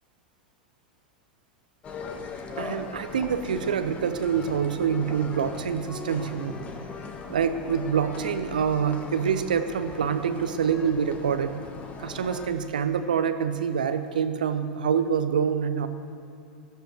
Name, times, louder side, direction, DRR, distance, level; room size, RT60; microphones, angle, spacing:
sound 1, 1.8-12.5, left 4 dB, 30° left, 1.4 m, -39 dB
voice 1, 2.6-6.6 7.3-11.6 12.0-15.9, right 7 dB, 70° right, 10 dB, 0.8 m, -26 dB
20.5 x 14.0 x 3.2 m, 2.6 s
figure-of-eight pair, 90°, 5 cm